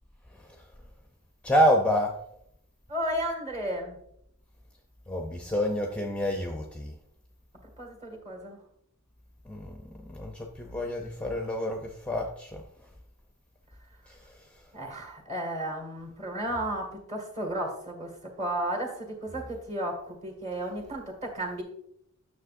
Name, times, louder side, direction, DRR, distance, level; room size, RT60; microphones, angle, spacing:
voice 1, 0.3-0.6 1.4-2.2 5.1-6.9 9.5-12.6 14.1-14.5, equal, 5° left, 0.5 m, -28 dB
voice 2, 2.9-4.0 7.8-8.6 14.7-21.6, right 1 dB, 30° right, 1.8 m, -33 dB
9.3 x 6.6 x 2.5 m
head